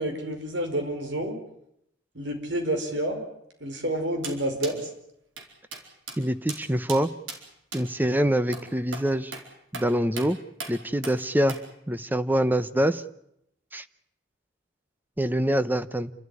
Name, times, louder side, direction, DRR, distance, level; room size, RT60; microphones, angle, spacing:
voice 1, 0.0-1.4 2.1-3.2 3.6-4.9, right 1 dB, 70° right, 5 dB, 5.0 m, -29 dB
sound 1, 4.2-4.4 4.6-4.8 5.4-5.5 5.7-5.8 6.1-6.2 6.5-6.6 6.9-7.0 7.3-7.4 7.7-7.8 8.5-8.6 8.9-9.1 9.3-9.4 9.7-9.9 10.2-10.3 10.6-10.7 11.0-11.2 11.5-11.6, right 4 dB, 85° right, 4.8 m, -37 dB
voice 2, 6.2-7.1 7.7-9.3 9.7-10.4 10.7-11.6 11.9-13.0 13.7-13.8 15.2-16.1, right 1 dB, 10° right, 12 dB, 0.8 m, -25 dB
29.5 x 13.5 x 9.8 m, 0.77 s
head